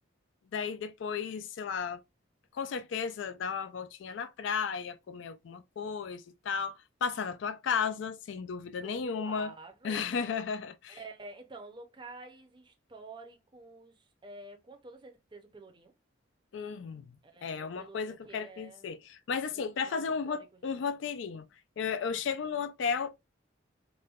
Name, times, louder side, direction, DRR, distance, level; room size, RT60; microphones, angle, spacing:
voice 1, 0.5-2.0 2.5-9.5 9.8-11.0 16.5-17.2 17.4-21.5 21.8-23.1, left 6 dB, 70° left, 0.4 m, -34 dB
voice 2, 8.8-10.1 10.9-15.9 17.2-18.9 19.5-20.8, right 3 dB, 25° right, 0.5 m, -49 dB
4.1 x 2.1 x 2.3 m
head